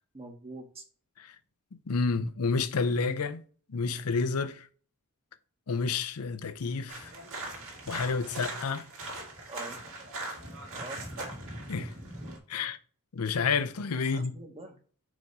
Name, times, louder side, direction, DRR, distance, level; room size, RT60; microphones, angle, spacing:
voice 1, 0.1-0.8 7.6-7.7 9.5-9.8 10.7-11.1 14.1-14.8, right 2 dB, 25° right, 1.2 m, -44 dB
voice 2, 1.7-3.4 3.7-4.7 5.7-7.1 7.9-8.9 11.7-11.9 12.5-12.8 13.1-14.3, left 4 dB, 90° left, 0.6 m, -30 dB
sound 1, 6.9-12.4, right 2 dB, 65° right, 2.1 m, -40 dB
5.1 x 5.0 x 4.7 m
head